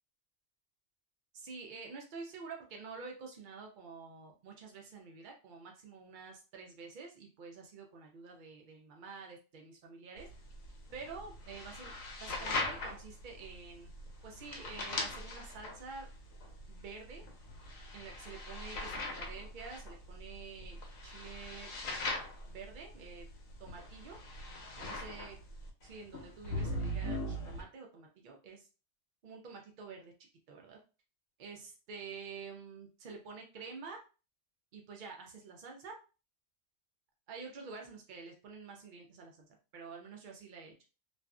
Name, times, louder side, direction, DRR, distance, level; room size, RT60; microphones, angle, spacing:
voice 1, 1.3-10.3 10.9-11.9 12.2-13.9 14.2-16.1 16.7-17.2 17.9-21.7 22.0-22.2 22.5-23.3 23.6-24.2 24.8-25.4 25.8-28.7 29.2-30.1 30.5-30.8 31.4-34.0 34.7-36.0 37.3-39.4 39.7-40.7, right 4 dB, 75° right, 1 dB, 0.4 m, -48 dB
sound 1, 10.2-27.6, left 1 dB, 80° left, 1.0 m, -41 dB
2.5 x 2.4 x 2.2 m, 0.34 s
omnidirectional pair, 1.3 m